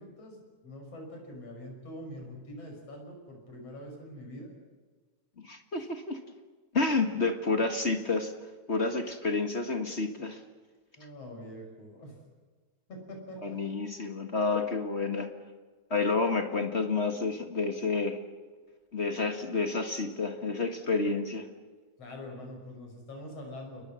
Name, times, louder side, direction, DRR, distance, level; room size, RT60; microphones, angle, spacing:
voice 1, 0.0-4.5 11.0-12.2 12.9-13.6 22.0-23.9, left 1 dB, 55° left, 2 dB, 7.1 m, -44 dB
voice 2, 5.4-6.2 6.7-8.3 8.7-10.4 13.4-15.3 15.9-18.2 18.9-21.5, left 3 dB, 30° left, 6 dB, 1.2 m, -29 dB
29.0 x 21.5 x 6.3 m, 1.4 s
omnidirectional pair, 3.4 m